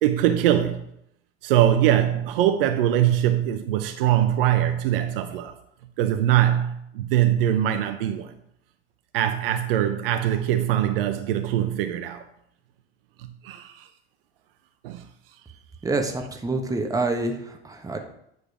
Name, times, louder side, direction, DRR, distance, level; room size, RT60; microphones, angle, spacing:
voice 1, 0.0-0.8 1.4-5.6 6.0-8.3 9.1-12.2 13.2-13.9 14.8-15.0, right 11 dB, 60° right, 0.7 m, -22 dB
voice 2, 15.8-18.0, right 2 dB, 10° right, 1.3 m, -27 dB
9.3 x 4.9 x 4.8 m
figure-of-eight pair, 80°, 32 cm